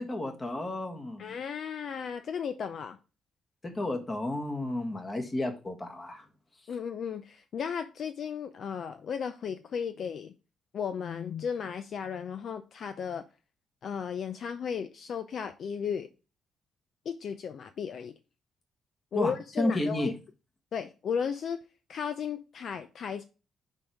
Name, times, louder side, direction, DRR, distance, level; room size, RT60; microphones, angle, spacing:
voice 1, 0.0-1.4 3.6-6.2 19.1-20.1, left 1 dB, 25° left, 1.6 m, -32 dB
voice 2, 1.2-3.0 6.7-10.3 10.7-13.2 13.8-16.1 17.1-18.1 19.1-20.1 20.7-21.6 21.9-23.2, left 7 dB, 60° left, 0.5 m, -35 dB
5.3 x 4.6 x 5.0 m
cardioid pair, 90°, 0 cm